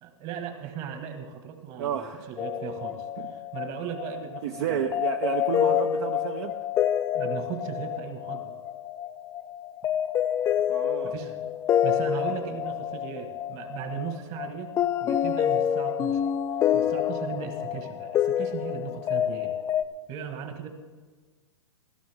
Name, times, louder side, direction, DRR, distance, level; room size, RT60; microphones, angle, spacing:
voice 1, 0.0-4.9 7.1-8.5 11.0-11.4 11.8-14.7 15.0-16.2 16.7-19.5 20.1-20.7, right 8 dB, 40° right, 6 dB, 1.8 m, -37 dB
voice 2, 1.8-2.3 3.2-3.3 4.4-6.5 10.7-11.1, right 8 dB, 60° right, 5 dB, 0.8 m, -31 dB
sound 1, 2.4-19.8, left 10 dB, 20° left, 0.4 m, -28 dB
15.5 x 13.5 x 3.6 m, 1.4 s
hypercardioid pair, 125°, 16 cm